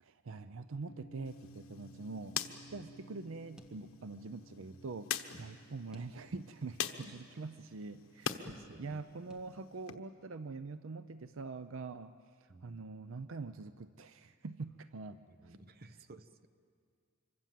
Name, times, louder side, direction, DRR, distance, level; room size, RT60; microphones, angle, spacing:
voice 1, 0.0-8.5 8.8-12.2 12.6-15.6, right 3 dB, 70° right, 12 dB, 0.6 m, -44 dB
sound 1, 0.9-11.0, right 1 dB, 50° left, 2.3 m, -59 dB
sound 2, 1.3-8.5 8.8-9.9, left 8 dB, 80° left, 1.1 m, -44 dB
sound 3, 3.6-4.4 4.8-4.9 5.9-6.6 7.1-7.2 8.5-9.0 9.3-10.0, equal, 5° right, 1.1 m, -57 dB
voice 2, 8.4-9.0 12.5-12.8 15.4-16.5, right 2 dB, 45° right, 11 dB, 0.8 m, -54 dB
26.0 x 24.0 x 7.5 m, 2.3 s
head